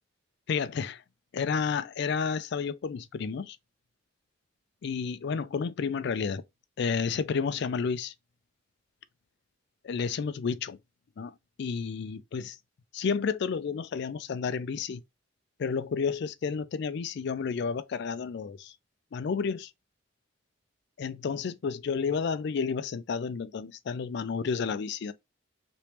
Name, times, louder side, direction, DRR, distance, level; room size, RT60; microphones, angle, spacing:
voice 1, 0.5-1.0 1.3-3.6 4.8-6.4 6.8-8.1 9.8-10.8 11.2-12.6 12.9-15.0 15.6-18.7 19.1-19.7 21.0-25.1, left 5 dB, 55° left, 0.3 m, -31 dB
3.3 x 3.0 x 2.8 m
head